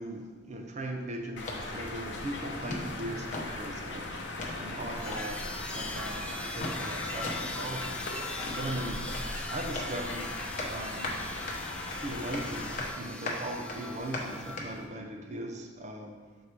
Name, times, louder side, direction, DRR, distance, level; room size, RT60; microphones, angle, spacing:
voice 1, 0.0-4.1 4.6-10.4 10.7-11.2 11.9-16.2, right 1 dB, 40° right, 3 dB, 0.6 m, -39 dB
sound 1, 1.4-12.9, left 2 dB, 80° left, 0.7 m, -39 dB
sound 2, 1.4-14.9, left 2 dB, 45° left, 0.9 m, -41 dB
sound 3, 5.0-14.6, left 1 dB, 5° left, 0.4 m, -41 dB
6.7 x 4.4 x 3.3 m, 1.4 s
head